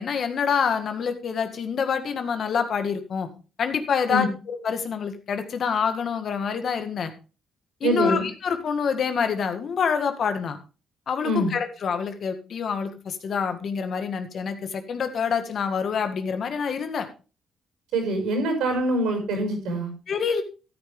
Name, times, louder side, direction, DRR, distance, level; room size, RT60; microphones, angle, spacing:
voice 1, 0.0-3.3 3.6-7.1 7.8-10.6 11.1-17.1 20.1-20.4, left 6 dB, 55° left, 8 dB, 1.7 m, -26 dB
voice 2, 7.8-8.2 11.2-11.5 17.9-19.9, right 1 dB, 90° right, 4 dB, 5.7 m, -24 dB
13.5 x 9.6 x 3.5 m, 0.33 s
cardioid pair, 90°, 0 cm